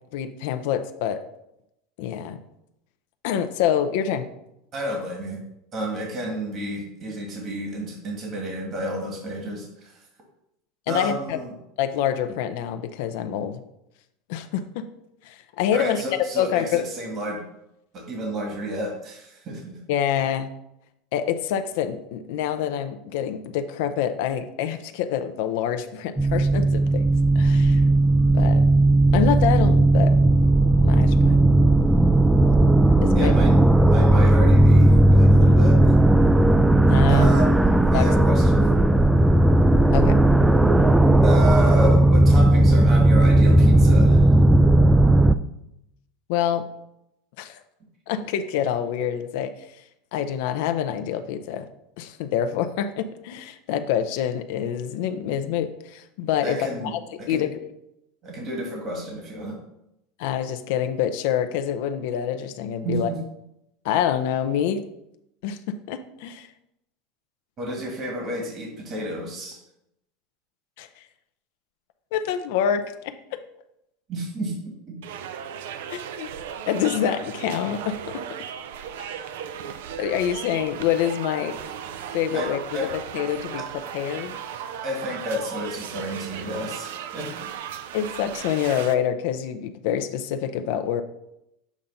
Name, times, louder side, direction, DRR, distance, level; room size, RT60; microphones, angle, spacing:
voice 1, 0.1-1.2 2.0-2.4 3.2-4.3 10.9-11.4 11.8-13.6 14.3-14.8 15.2-16.0 16.4-16.9 19.9-20.5 21.1-27.1 27.3-27.8 28.3-28.6 29.1-30.1 30.8-31.4 33.0-33.3 36.9-37.3 37.9-38.1 39.9-40.2 46.3-46.6 47.4-47.6 48.1-49.5 50.1-51.7 52.0-57.0 57.3-57.5 60.2-63.1 63.8-64.8 65.4-66.5 70.8-70.9 72.1-73.4 75.9-76.3 76.7-78.2 79.0-79.1 80.0-81.6 82.1-82.9 83.1-83.6 83.9-84.4 87.9-91.0, left 9 dB, 70° left, 9 dB, 0.5 m, -26 dB
voice 2, 4.7-5.4 5.7-10.0 10.9-11.6 15.7-17.4 17.9-19.8 33.1-33.6 33.9-36.0 37.1-38.7 41.2-44.3 56.4-56.9 57.2-57.4 58.2-59.6 62.8-63.2 67.6-69.6 74.1-74.5 74.9-75.0 82.3-82.9 83.6-83.7 84.8-87.9, equal, 40° right, 0 dB, 1.8 m, -31 dB
sound 1, 26.2-45.3, right 1 dB, 5° right, 0.3 m, -16 dB
sound 2, 75.0-88.9, right 9 dB, 80° right, 0.4 m, -36 dB
7.2 x 2.5 x 5.4 m, 0.82 s
supercardioid pair, 105°, 0 cm